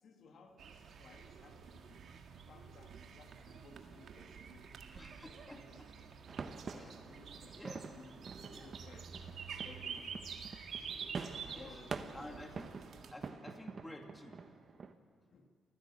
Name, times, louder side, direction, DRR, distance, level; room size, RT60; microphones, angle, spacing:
voice 1, 0.0-2.2 2.5-4.8 5.2-5.8 6.5-8.2 8.6-9.2 9.6-10.4 11.5-12.4 15.3-15.5, left 4 dB, 60° left, 4 dB, 1.9 m, -59 dB
sound 1, 0.6-13.1, right 6 dB, 60° right, 1.8 m, -49 dB
voice 2, 4.9-5.9 6.8-6.9 7.5-7.8 8.5-8.7 11.5-11.8 12.1-12.7 13.1-14.4, left 1 dB, 10° left, 3 dB, 2.6 m, -51 dB
sound 2, 6.3-14.9, right 5 dB, 40° right, 1.2 m, -47 dB
28.0 x 16.0 x 7.4 m, 2.1 s
cardioid pair, 90°, 0 cm